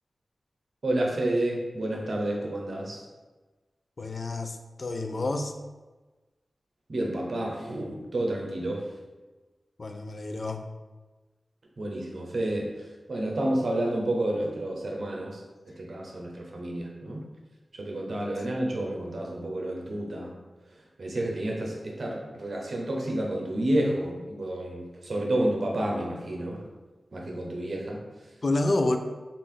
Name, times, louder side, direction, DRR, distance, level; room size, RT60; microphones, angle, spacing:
voice 1, 0.8-3.0 6.9-8.8 11.8-12.7 13.1-15.3 15.8-17.2 17.8-20.3 21.0-26.6 27.1-28.0, right 1 dB, 65° right, -1 dB, 0.7 m, -30 dB
voice 2, 4.0-5.5 9.8-10.6 18.4-18.5 28.4-29.0, left 2 dB, 50° left, 6 dB, 0.3 m, -28 dB
3.3 x 2.5 x 3.7 m, 1.2 s
wide cardioid pair, 90°, 0 cm